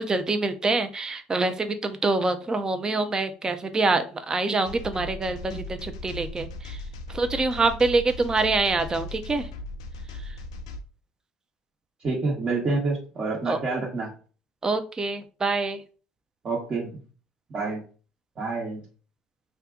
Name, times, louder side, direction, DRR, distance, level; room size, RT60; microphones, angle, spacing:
voice 1, 0.0-6.8 7.1-9.5 13.5-13.6 14.6-15.8, right 3 dB, 25° right, 9 dB, 0.6 m, -25 dB
sound 1, 4.6-10.8, left 2 dB, 85° left, 0.4 m, -38 dB
voice 2, 12.0-14.1 16.4-17.0 17.5-17.8 18.4-18.8, right 3 dB, 40° right, -4 dB, 1.2 m, -28 dB
2.6 x 2.4 x 3.6 m, 0.37 s
hypercardioid pair, 70°, 3 cm